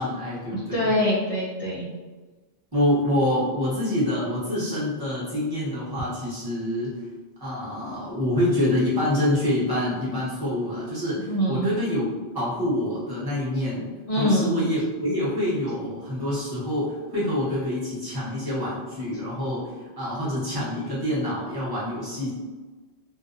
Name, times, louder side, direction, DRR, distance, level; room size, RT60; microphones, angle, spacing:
voice 1, 0.0-0.9 2.7-6.9 7.4-13.9 14.2-22.3, left 1 dB, 20° right, -9 dB, 0.9 m, -26 dB
voice 2, 0.5-1.9 11.3-11.7 14.1-14.5, equal, 50° left, -6 dB, 0.4 m, -24 dB
2.5 x 2.2 x 2.5 m, 1.3 s
omnidirectional pair, 1.1 m